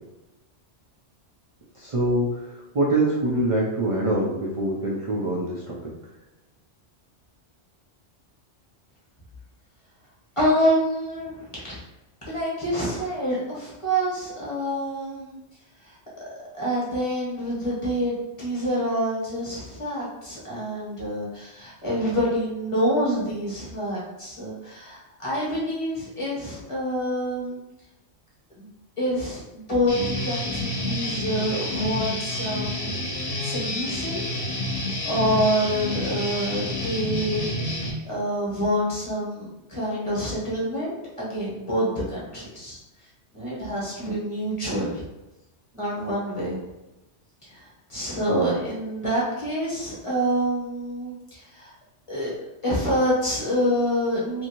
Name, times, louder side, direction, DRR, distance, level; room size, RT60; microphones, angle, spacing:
voice 1, 1.7-5.9, right 1 dB, 50° right, -5 dB, 0.4 m, -24 dB
voice 2, 10.4-11.8 12.3-15.4 15.9-16.0 16.5-27.6 28.6-28.7 29.0-32.9 33.4-34.2 35.0-37.4 37.7-42.8 43.3-45.0 45.7-46.6 47.4-51.7 52.1-52.3 52.6-54.5, equal, 30° left, -7 dB, 1.0 m, -27 dB
Guitar, 29.9-37.9, left 1 dB, 55° left, 0.9 m, -29 dB
2.7 x 2.6 x 2.8 m, 0.97 s
omnidirectional pair, 1.2 m